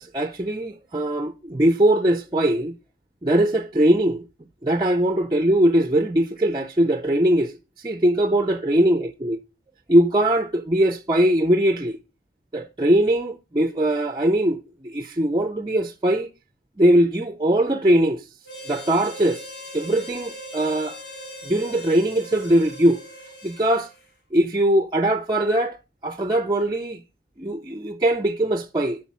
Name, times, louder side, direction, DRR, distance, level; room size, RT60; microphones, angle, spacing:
voice 1, 0.1-2.7 3.2-4.2 4.6-9.4 9.9-12.0 12.5-16.3 16.8-18.2 18.7-21.0 21.4-23.0 23.4-23.9 24.3-25.8 26.0-27.0 27.4-29.0, right 1 dB, 25° right, 0.5 m, -21 dB
Harmonica, 18.4-24.1, equal, 80° left, 4.2 m, -40 dB
8.3 x 6.2 x 6.0 m
head